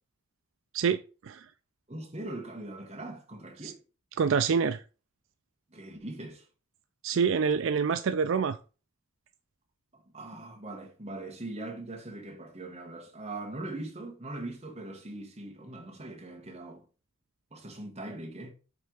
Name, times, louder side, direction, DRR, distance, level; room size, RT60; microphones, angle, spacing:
voice 1, 0.7-1.5 3.6-3.7 4.2-4.8 7.0-8.6, right 6 dB, 65° right, 0.4 m, -26 dB
voice 2, 1.9-3.8 5.7-6.5 9.9-16.9 17.5-18.5, right 2 dB, 30° right, 1.5 m, -41 dB
8.3 x 3.4 x 4.7 m
head